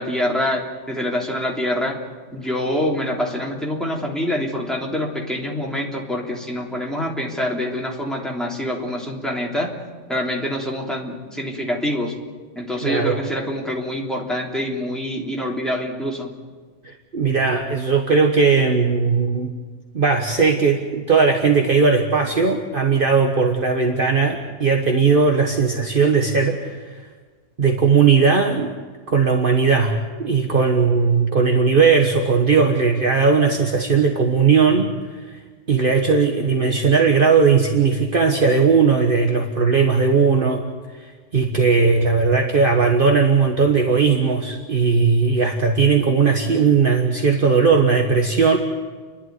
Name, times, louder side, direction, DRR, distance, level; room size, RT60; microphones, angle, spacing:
voice 1, 0.0-1.9 2.3-9.7 10.1-12.1 12.5-16.3, left 1 dB, ahead, -2 dB, 3.3 m, -25 dB
voice 2, 12.8-13.2 16.8-19.5 19.9-27.0 27.6-28.7 29.1-35.4 35.7-40.6 41.0-41.1 41.3-48.6, right 5 dB, 50° right, 2 dB, 1.5 m, -18 dB
30.0 x 11.5 x 9.5 m, 1.5 s
omnidirectional pair, 1.2 m